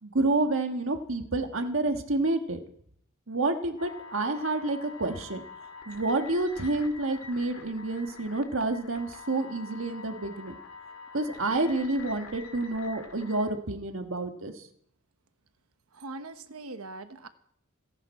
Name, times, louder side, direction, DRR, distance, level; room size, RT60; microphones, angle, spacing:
voice 1, 0.0-2.6 3.3-5.4 5.9-10.5 11.1-14.5, right 2 dB, 65° right, 6 dB, 1.5 m, -29 dB
sound 1, 3.8-13.4, left 4 dB, 80° left, 2.1 m, -46 dB
voice 2, 15.9-17.3, right 2 dB, 90° right, 10 dB, 1.1 m, -41 dB
26.5 x 11.0 x 4.3 m, 0.67 s
head